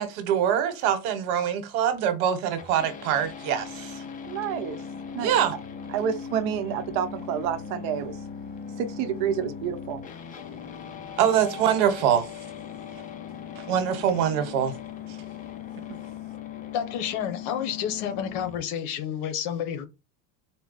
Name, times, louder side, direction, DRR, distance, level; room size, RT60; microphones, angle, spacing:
voice 1, 0.0-4.0 5.2-5.6 11.2-12.3 13.7-14.7, right 9 dB, 80° right, 1.2 m, -24 dB
sound 1, 2.6-18.6, left 7 dB, 20° left, 0.4 m, -39 dB
voice 2, 4.2-4.8 5.1-5.6 5.9-8.2 8.8-10.0 12.9-13.1 13.6-13.7 15.9-16.0, right 8 dB, 65° right, 0.8 m, -29 dB
voice 3, 16.7-19.9, left 9 dB, 65° left, 0.9 m, -30 dB
4.2 x 2.2 x 3.9 m
supercardioid pair, 140°, 43 cm